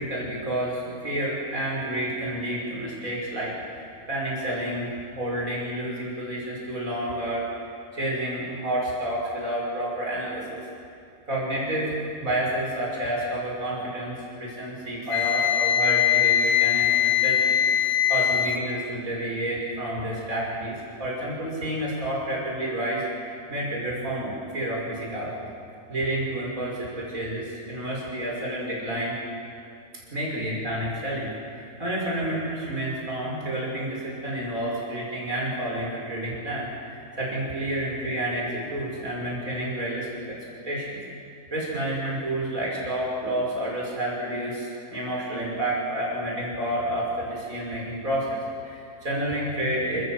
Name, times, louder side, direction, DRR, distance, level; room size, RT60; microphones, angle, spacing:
voice 1, 0.0-4.9 5.2-10.6 11.3-25.4 25.9-29.2 30.1-40.4 40.6-41.0 41.5-50.0, right 1 dB, 55° right, -4 dB, 6.3 m, -30 dB
Wind instrument woodwind instrument, 15.1-18.6, left 10 dB, 85° left, 1.8 m, -21 dB
29.5 x 14.0 x 7.7 m, 2.5 s
omnidirectional pair, 1.7 m